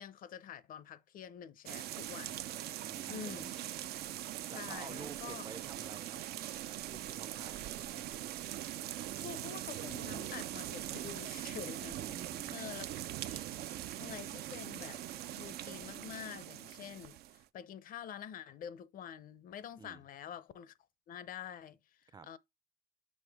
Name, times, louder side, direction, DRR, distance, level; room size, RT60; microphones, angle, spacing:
voice 1, 0.0-2.4 3.1-3.5 4.5-5.4 9.2-12.9 13.3-13.4 14.0-15.0 15.4-20.8 21.1-22.4, left 9 dB, 55° left, 0.6 m, -47 dB
sound 1, 1.7-17.4, right 13 dB, 70° right, 0.5 m, -42 dB
voice 2, 2.8-3.5 4.5-6.4 6.6-8.2 12.0-12.8 19.8-20.0 22.1-22.3, right 5 dB, 25° right, 0.5 m, -51 dB
6.4 x 5.2 x 3.4 m
cardioid pair, 110°, 17 cm